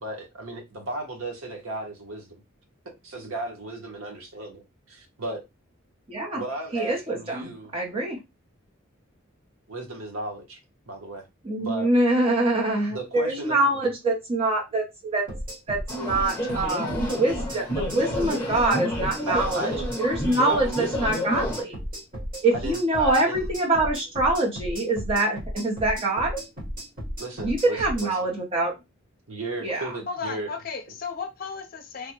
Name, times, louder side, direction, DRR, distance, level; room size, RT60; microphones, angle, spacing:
voice 1, 0.0-2.4 3.0-5.4 6.3-7.7 9.7-10.6 10.9-11.2 11.6-11.9 12.9-13.6 19.3-20.0 20.5-20.8 22.5-23.4 27.2-28.1 29.3-30.5, right 2 dB, 85° right, 0.9 m, -35 dB
voice 2, 6.1-6.4 6.7-8.2 11.4-15.3 15.7-19.7 20.0-21.8 22.4-26.4 27.4-28.8 29.6-29.9, right 2 dB, 30° right, 0.7 m, -25 dB
sound 1, 15.3-28.1, equal, 45° right, 1.3 m, -34 dB
sound 2, 15.9-21.6, equal, 10° left, 1.0 m, -30 dB
voice 3, 30.1-32.1, left 5 dB, 45° left, 0.6 m, -34 dB
3.3 x 2.1 x 2.9 m
head